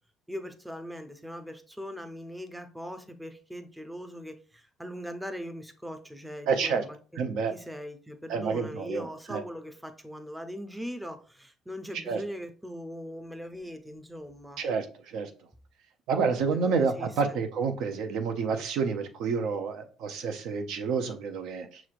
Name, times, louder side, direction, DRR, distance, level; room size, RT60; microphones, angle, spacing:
voice 1, 0.3-7.2 7.5-14.6 16.5-17.4, equal, 5° right, 0.5 m, -40 dB
voice 2, 6.5-6.8 7.2-7.5 8.3-9.4 12.1-12.2 14.6-15.3 16.1-21.8, right 5 dB, 75° right, 0.6 m, -29 dB
5.8 x 3.1 x 2.4 m
cardioid pair, 115°, 0 cm